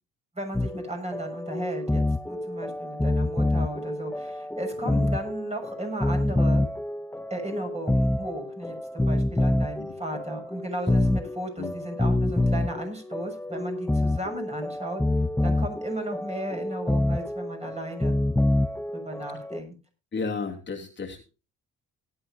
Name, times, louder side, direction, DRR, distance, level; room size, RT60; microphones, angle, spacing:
voice 1, 0.3-2.0 2.3-6.6 7.3-15.0 15.4-18.1 18.9-19.7, right 1 dB, 20° right, 3 dB, 6.6 m, -35 dB
sound 1, 0.5-19.6, left 1 dB, 5° left, 0.7 m, -27 dB
voice 2, 20.1-21.2, left 4 dB, 35° left, 0 dB, 2.8 m, -33 dB
18.5 x 11.0 x 2.7 m, 0.32 s
cardioid pair, 90°, 30 cm